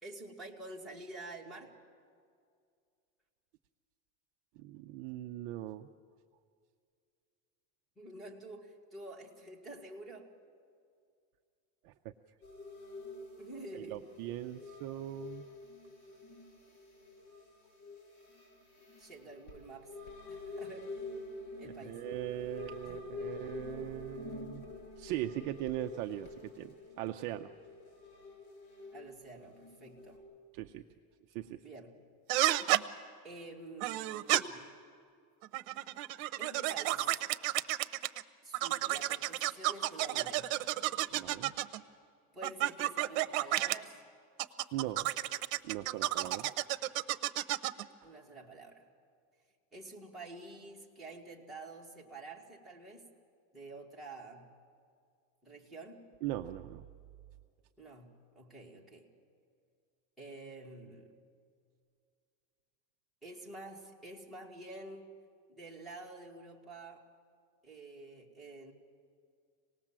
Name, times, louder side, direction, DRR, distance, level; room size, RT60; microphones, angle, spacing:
voice 1, 0.0-1.7 8.0-10.3 13.4-14.0 19.0-19.9 20.3-21.0 21.6-22.1 22.8-23.0 28.9-30.2 31.6-32.0 33.2-34.7 36.4-37.2 38.4-40.5 42.3-43.9 46.4-46.5 48.0-48.9 49.7-53.1 53.5-54.5 55.4-56.0 57.8-59.1 60.2-61.1 63.2-65.1 65.5-67.1 67.6-68.7, right 2 dB, ahead, -5 dB, 2.0 m, -49 dB
voice 2, 4.6-5.9 11.8-12.1 13.7-15.5 21.6-24.6 25.0-27.5 30.5-30.8 31.3-31.6 41.1-41.6 44.7-45.1 45.6-46.5 56.2-56.9, right 14 dB, 40° right, 7 dB, 0.5 m, -40 dB
sound 1, 12.4-30.2, left 3 dB, 60° left, 7.9 m, -47 dB
sound 2, 32.3-32.8 33.8-34.4 35.4-38.2 38.5-41.8 42.4-43.8 44.4-47.8, right 15 dB, 65° right, 0.9 m, -31 dB
26.0 x 19.0 x 7.4 m, 2.2 s
cardioid pair, 175°, 44 cm